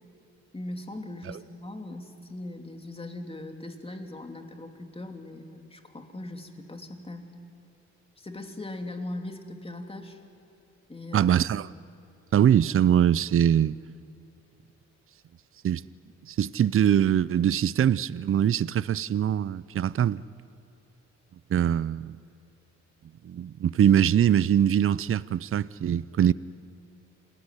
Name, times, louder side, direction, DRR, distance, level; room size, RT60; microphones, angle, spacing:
voice 1, 0.5-7.3 8.2-10.2 10.9-11.3, left 2 dB, 20° left, 3.1 m, -39 dB
voice 2, 11.1-11.7 12.3-13.8 15.6-15.8 16.3-20.2 21.5-22.1 23.2-26.3, right 9 dB, 45° right, 0.6 m, -23 dB
28.0 x 19.5 x 9.9 m
cardioid pair, 85°, 29 cm